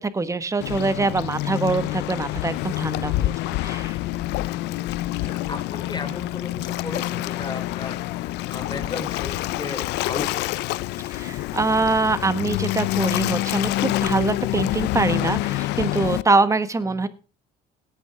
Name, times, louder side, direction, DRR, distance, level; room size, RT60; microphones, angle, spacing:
voice 1, 0.0-4.0 11.1-17.1, right 3 dB, 20° right, 13 dB, 1.4 m, -24 dB
Waves surf, 0.6-16.2, left 16 dB, 85° left, 0.5 m, -27 dB
voice 2, 5.2-10.7 16.8-17.1, left 3 dB, 25° left, 8 dB, 3.4 m, -35 dB
17.5 x 9.2 x 3.6 m, 0.34 s
cardioid pair, 110°, 17 cm